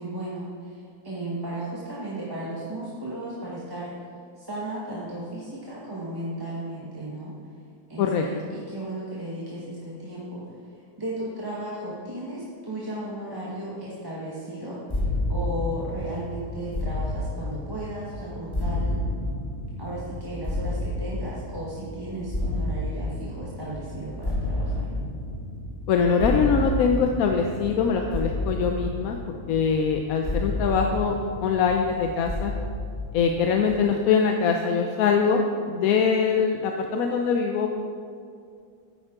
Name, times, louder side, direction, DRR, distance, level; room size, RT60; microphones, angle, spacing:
voice 1, 0.0-4.1 4.3-7.5 7.9-14.8 15.3-19.0 19.8-24.9, right 1 dB, 15° right, -7 dB, 1.1 m, -35 dB
sound 1, 14.9-33.8, left 1 dB, 20° left, 0.9 m, -31 dB
voice 2, 25.9-32.5 33.1-35.4 35.7-37.9, left 6 dB, 65° left, 3 dB, 1.0 m, -23 dB
9.8 x 9.1 x 3.7 m, 2.3 s
omnidirectional pair, 1.8 m